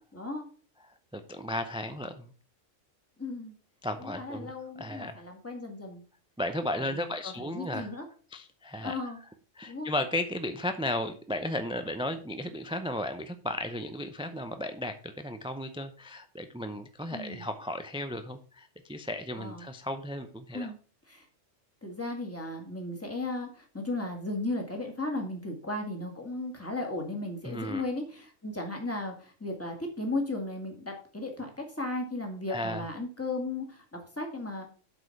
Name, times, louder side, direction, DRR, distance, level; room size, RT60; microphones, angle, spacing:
voice 1, 0.1-0.5 3.2-3.5 4.0-6.0 6.7-8.1 8.8-9.2 9.7-9.9 17.1-17.4 19.4-19.7 20.5-20.8 21.1-21.3 21.8-34.7, left 2 dB, 10° left, 2 dB, 2.1 m, -36 dB
voice 2, 0.8-2.3 3.8-5.2 6.4-7.9 8.3-9.0 9.6-20.7 27.4-27.8 32.5-32.8, left 1 dB, 10° right, 8 dB, 0.3 m, -35 dB
8.0 x 5.1 x 5.8 m, 0.40 s
omnidirectional pair, 1.3 m